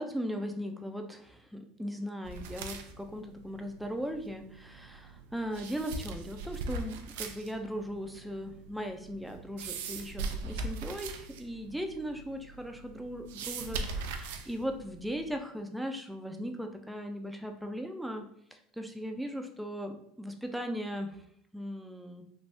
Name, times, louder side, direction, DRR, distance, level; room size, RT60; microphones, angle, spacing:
voice 1, 0.0-18.2 18.5-21.1 21.5-22.3, equal, 5° right, 4 dB, 0.4 m, -38 dB
sound 1, 2.2-15.4, right 3 dB, 80° right, 0.3 m, -41 dB
3.3 x 2.5 x 2.6 m, 0.67 s
supercardioid pair, 95°, 0 cm